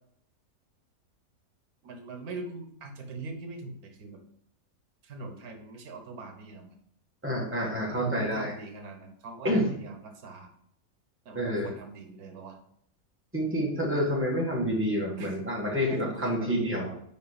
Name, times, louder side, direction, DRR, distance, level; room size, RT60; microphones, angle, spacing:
voice 1, 1.8-4.2 5.0-6.8 7.6-10.5 11.2-12.6 15.2-15.4 15.7-16.9, right 3 dB, 85° right, 5 dB, 1.5 m, -41 dB
voice 2, 7.2-8.5 9.4-9.7 11.3-11.7 13.3-16.9, equal, 10° right, -2 dB, 1.5 m, -28 dB
5.2 x 5.0 x 5.0 m, 0.68 s
omnidirectional pair, 1.5 m